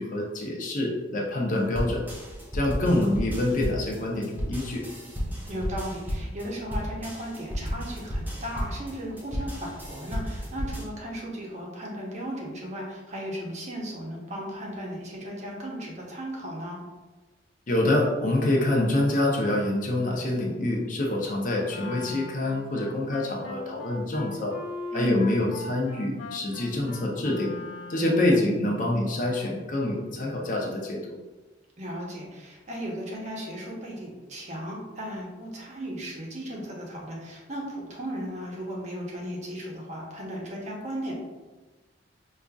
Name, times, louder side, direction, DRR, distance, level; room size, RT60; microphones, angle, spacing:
voice 1, 0.0-2.0 2.5-4.8 17.7-24.5 24.9-27.5 27.9-31.2, left 1 dB, 45° left, -2 dB, 0.6 m, -26 dB
sound 1, 1.7-10.8, equal, 10° right, 0.5 m, -33 dB
voice 2, 5.5-16.8 24.9-25.1 28.3-28.4 31.8-41.1, equal, 40° right, -3 dB, 0.8 m, -36 dB
Wind instrument woodwind instrument, 21.7-28.3, left 2 dB, 90° left, 0.8 m, -40 dB
4.9 x 2.5 x 2.3 m, 1.2 s
head